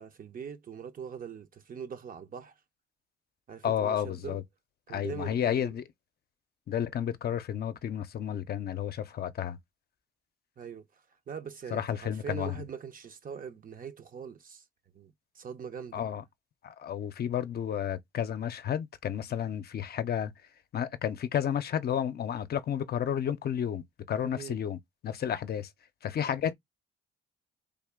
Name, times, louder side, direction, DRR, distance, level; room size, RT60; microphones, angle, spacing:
voice 1, 0.0-2.5 3.5-4.4 4.9-5.7 10.6-10.8 11.3-14.6 14.9-16.0 24.3-24.6, right 7 dB, 45° right, 0.7 m, -42 dB
voice 2, 3.6-4.4 4.9-5.8 6.7-9.6 11.7-12.6 15.9-16.2 16.6-20.3 20.7-25.7 26.0-26.5, left 9 dB, 50° left, 0.5 m, -31 dB
3.5 x 2.4 x 3.6 m
cardioid pair, 90°, 20 cm